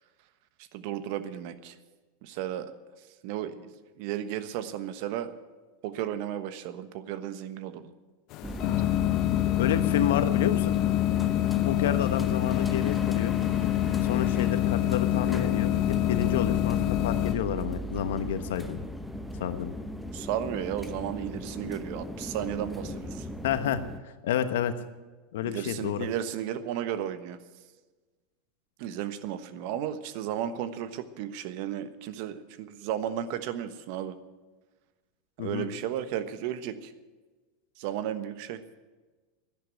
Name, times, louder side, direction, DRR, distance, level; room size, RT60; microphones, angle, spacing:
voice 1, 0.7-1.7 2.2-2.8 3.2-5.3 5.8-7.9 20.1-23.3 25.4-27.4 28.8-34.2 35.4-36.9 37.8-38.6, right 10 dB, 60° right, 11 dB, 1.2 m, -34 dB
sound 1, 8.3-17.3, left 14 dB, 50° left, 0.7 m, -26 dB
sound 2, 8.4-24.0, equal, ahead, 1.1 m, -37 dB
voice 2, 9.6-10.7 11.6-13.3 14.0-18.8 19.4-19.7 23.4-23.8 24.2-24.7 25.3-26.1 35.4-35.7, left 9 dB, 75° left, 11 dB, 1.1 m, -29 dB
12.0 x 10.5 x 10.0 m, 1.3 s
hypercardioid pair, 100°, 0 cm